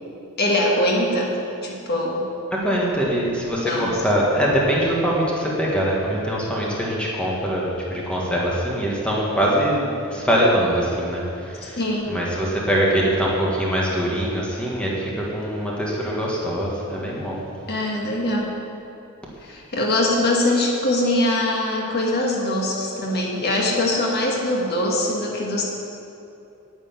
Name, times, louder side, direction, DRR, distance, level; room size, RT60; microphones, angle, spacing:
voice 1, 0.4-1.3 1.6-2.2 3.7-4.0 11.8-12.2 17.7-18.5 19.4-25.6, left 1 dB, 50° left, -2 dB, 1.6 m, -22 dB
voice 2, 2.5-11.8 12.1-17.4, equal, 5° left, -5 dB, 1.7 m, -23 dB
9.2 x 6.8 x 8.9 m, 2.7 s
head